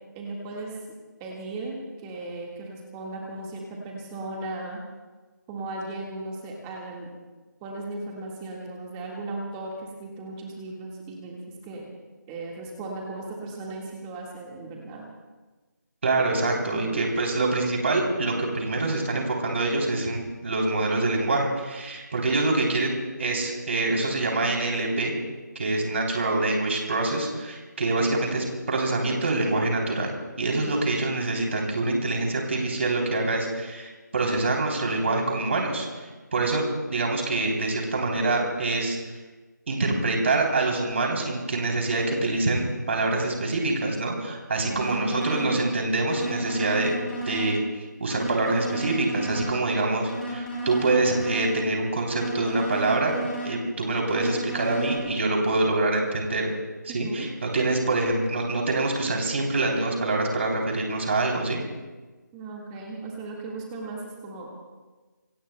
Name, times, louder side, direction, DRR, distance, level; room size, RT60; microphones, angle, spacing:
voice 1, 0.2-0.8 1.2-4.8 5.5-7.1 7.6-11.9 12.3-15.1 16.7-17.0 30.5-31.0 44.6-45.6 56.9-57.3 62.3-64.5, right 2 dB, 10° right, -1 dB, 1.7 m, -36 dB
voice 2, 16.0-25.1 25.5-30.1 30.4-36.6 36.9-39.0 39.7-46.9 47.3-47.6 48.0-53.1 53.4-56.5 56.8-61.6, right 2 dB, 40° right, 1 dB, 3.2 m, -25 dB
sound 1, 44.8-45.6 46.1-47.6 48.1-49.6 50.1-51.6 52.1-53.6 54.1-55.0, right 1 dB, 5° left, 3.6 m, -34 dB
27.5 x 22.5 x 2.2 m, 1.3 s
figure-of-eight pair, 170°, 10 cm